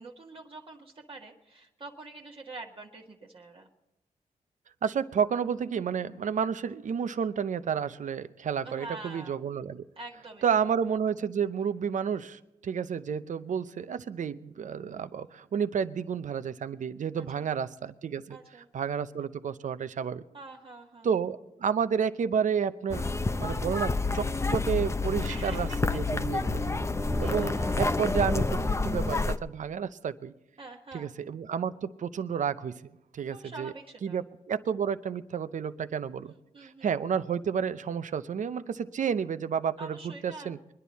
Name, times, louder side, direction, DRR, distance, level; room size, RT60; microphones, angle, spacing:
voice 1, 0.0-3.7 8.6-9.4 10.0-10.7 17.2-17.5 18.3-18.7 20.3-21.1 25.2-26.0 27.2-27.9 30.6-31.1 33.3-34.3 36.5-36.9 39.8-40.5, right 2 dB, 40° right, -1 dB, 1.4 m, -45 dB
voice 2, 4.8-9.8 10.4-18.4 18.7-20.2 21.0-23.1 23.4-26.7 27.2-30.3 30.9-32.8 33.1-33.7 34.0-36.3 36.6-40.6, right 7 dB, 60° right, 13 dB, 0.7 m, -31 dB
sound 1, 22.9-29.4, left 3 dB, 20° left, 0.6 m, -28 dB
23.5 x 10.5 x 4.1 m, 0.89 s
cardioid pair, 80°, 15 cm